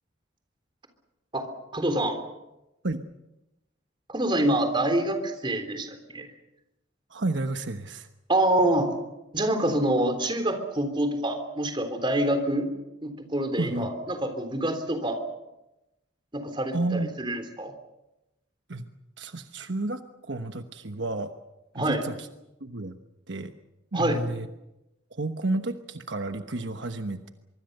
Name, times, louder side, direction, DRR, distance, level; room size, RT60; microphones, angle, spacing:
voice 1, 1.3-2.2 4.1-6.3 8.3-8.9 9.3-12.7 13.0-15.2 16.3-17.7 21.8-22.0 23.9-24.2, right 1 dB, 25° right, 7 dB, 3.5 m, -26 dB
voice 2, 7.1-8.1 13.6-13.9 16.7-17.1 18.7-18.9 19.2-21.3 21.7-22.3 22.6-23.0 23.3-23.5 23.9-24.5 25.1-27.3, right 2 dB, 70° right, 7 dB, 1.2 m, -31 dB
24.5 x 24.0 x 6.7 m, 0.94 s
head